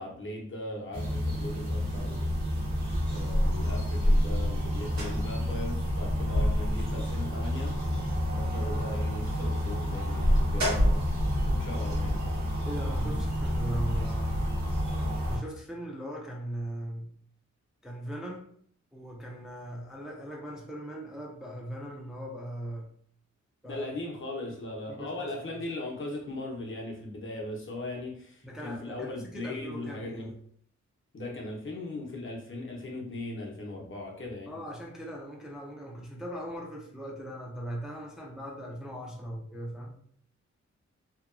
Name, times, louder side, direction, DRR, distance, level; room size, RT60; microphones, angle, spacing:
voice 1, 0.0-2.3 3.1-7.7 8.4-11.0 11.4-12.2 23.6-30.3 31.1-34.5, left 2 dB, 45° left, 0.7 m, -38 dB
sound 1, 0.9-15.4, equal, 70° right, 0.9 m, -28 dB
voice 2, 12.6-14.6 15.2-17.1 17.8-18.5 18.9-22.9 23.6-23.9 24.9-25.3 28.4-30.4 34.5-39.9, right 1 dB, ahead, 0.4 m, -39 dB
2.8 x 2.2 x 2.4 m
wide cardioid pair, 95°, 29 cm